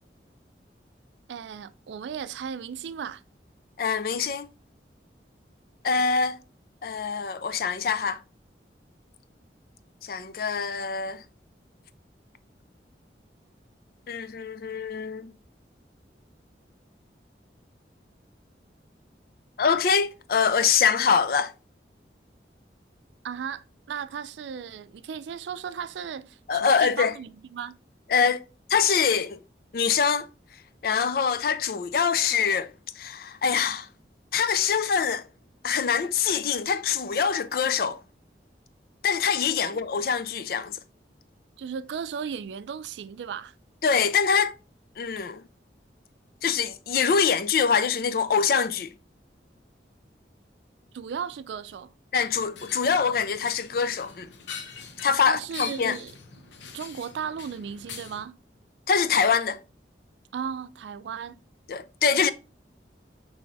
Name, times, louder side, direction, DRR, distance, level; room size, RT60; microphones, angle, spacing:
voice 1, 1.3-3.2 23.2-27.8 39.6-39.8 41.6-43.5 50.9-51.9 55.2-56.1 56.7-58.4 60.3-61.4, right 7 dB, 80° right, 0.3 m, -36 dB
voice 2, 3.8-4.5 5.8-6.4 6.8-8.2 10.0-11.2 14.1-15.3 19.6-21.5 26.5-27.2 28.1-28.4 28.7-29.4 29.7-30.3 30.8-33.9 34.3-35.2 35.6-38.0 39.0-40.8 43.8-44.6 45.0-45.4 46.4-48.9 52.1-54.3 55.0-56.0 58.9-59.6 61.7-62.3, left 6 dB, 55° left, 0.4 m, -24 dB
sound 1, 52.2-58.2, left 6 dB, 80° left, 0.7 m, -42 dB
5.8 x 3.1 x 2.6 m
head